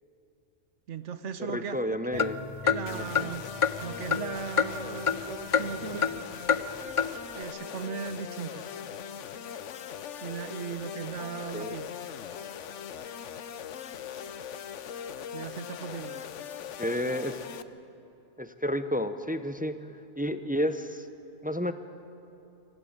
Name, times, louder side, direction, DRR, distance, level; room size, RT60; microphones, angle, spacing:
voice 1, 0.9-1.8 2.1-2.3 2.6-3.4 3.8-6.1 7.3-8.7 10.2-11.9 15.3-16.2, right 7 dB, 80° right, 11 dB, 1.3 m, -37 dB
voice 2, 1.4-2.4 2.8-3.3 11.5-11.7 16.8-17.4 18.4-19.8 20.2-21.1 21.4-21.7, equal, 10° right, 10 dB, 0.5 m, -31 dB
sound 1, 2.1-5.3 5.5-6.2 6.5-6.6 7.0-7.1, left 6 dB, 35° left, 0.6 m, -27 dB
sound 2, 2.9-17.6, left 8 dB, 85° left, 1.1 m, -40 dB
25.0 x 16.0 x 8.8 m, 2.8 s
omnidirectional pair, 1.2 m